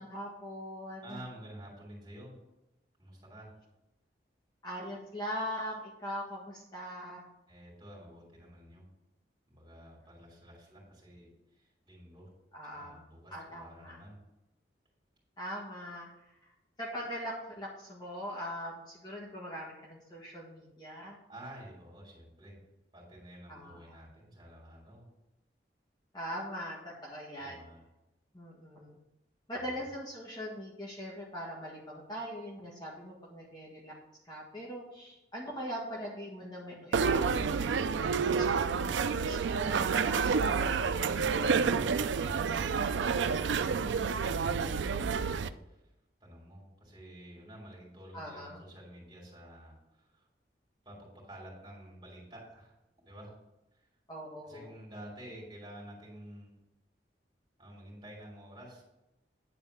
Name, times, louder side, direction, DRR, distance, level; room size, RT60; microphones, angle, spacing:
voice 1, 0.0-1.2 4.6-7.3 12.5-13.0 13.3-14.0 15.4-16.5 16.8-21.2 23.5-24.0 26.1-27.6 28.3-29.0 29.5-33.9 34.3-37.7 38.2-40.4 48.1-48.6 54.1-54.7, equal, 25° left, -4 dB, 1.7 m, -41 dB
voice 2, 1.0-2.4 3.0-3.5 7.5-8.9 9.5-12.3 12.7-14.2 21.3-22.6 22.9-25.1 27.4-27.8 41.4-42.8 43.1-45.8 46.2-50.2 50.8-52.8 53.0-53.3 53.7-53.9 54.4-56.5 57.6-58.8, right 1 dB, 25° right, -3 dB, 3.2 m, -50 dB
sound 1, 36.9-45.5, right 5 dB, 85° right, 0.4 m, -29 dB
9.8 x 4.2 x 7.0 m, 0.92 s
head